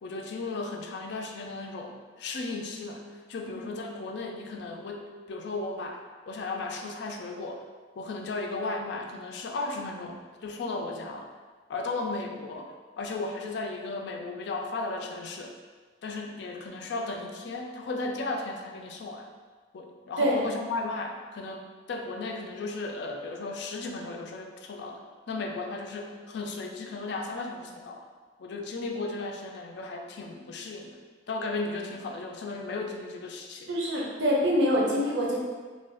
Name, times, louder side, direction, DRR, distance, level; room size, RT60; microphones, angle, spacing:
voice 1, 0.0-6.0 6.3-7.6 8.0-11.3 11.7-15.6 16.0-19.3 19.7-28.0 28.4-31.0 31.3-33.7, left 3 dB, 65° left, 2 dB, 0.4 m, -35 dB
voice 2, 33.7-35.4, equal, 75° right, -4 dB, 0.7 m, -25 dB
2.7 x 2.3 x 3.4 m, 1.5 s
head